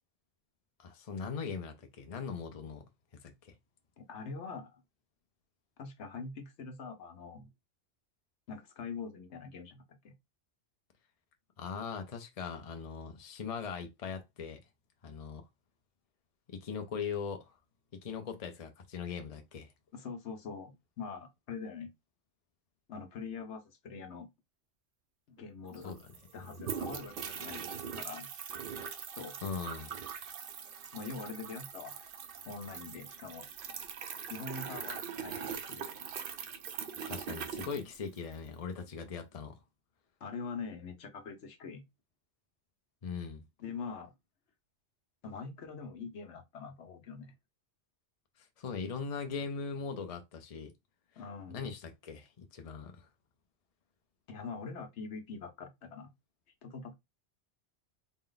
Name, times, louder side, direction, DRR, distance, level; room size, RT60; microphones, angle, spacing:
voice 1, 0.8-2.8 3.1-3.5 11.6-14.6 15.0-15.4 16.5-17.6 17.9-19.7 25.8-26.5 29.4-29.9 37.1-39.6 43.0-43.4 48.4-50.7 51.5-53.1, left 5 dB, 40° left, 0.7 m, -40 dB
voice 2, 4.0-4.8 5.8-7.5 8.5-10.1 19.9-21.9 22.9-24.3 25.3-25.9 26.3-27.6 27.9-28.3 29.2-29.4 30.9-32.0 32.5-33.5 34.3-35.9 40.2-41.8 43.6-44.1 45.2-47.3 51.2-51.6 54.3-56.1 56.6-56.9, left 5 dB, 80° left, 1.2 m, -43 dB
sound 1, 25.4-25.5 25.7-38.5, right 7 dB, 60° right, 0.7 m, -42 dB
4.1 x 2.1 x 3.9 m
omnidirectional pair, 1.2 m